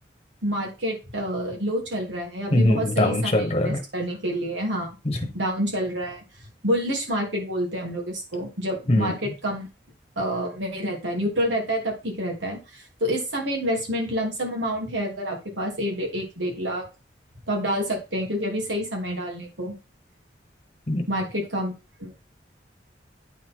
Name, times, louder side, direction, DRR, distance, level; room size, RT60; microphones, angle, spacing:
voice 1, 0.4-3.3 3.6-6.2 6.6-9.7 10.2-16.8 17.5-19.7 21.1-21.7 22.0-22.1, equal, 85° right, 3.1 m, -28 dB
voice 2, 2.5-3.8 5.0-5.2 8.9-9.1 20.9-21.1, left 1 dB, 35° left, 1.4 m, -22 dB
9.1 x 4.1 x 4.6 m
head